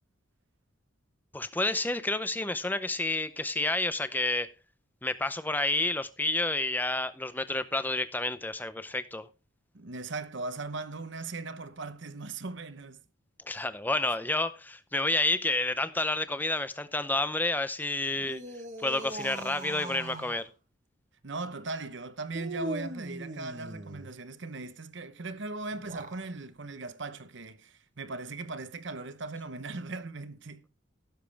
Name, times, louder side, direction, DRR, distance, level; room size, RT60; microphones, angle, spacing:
voice 1, 1.3-4.5 5.0-9.3 13.5-18.4 18.8-20.5, left 2 dB, 10° left, 0.6 m, -30 dB
voice 2, 9.7-13.0 21.2-30.7, right 3 dB, 60° right, 0.9 m, -39 dB
sound 1, 18.2-20.5 22.3-24.1 25.7-26.3, right 1 dB, 35° right, 1.3 m, -40 dB
16.5 x 7.4 x 3.4 m
head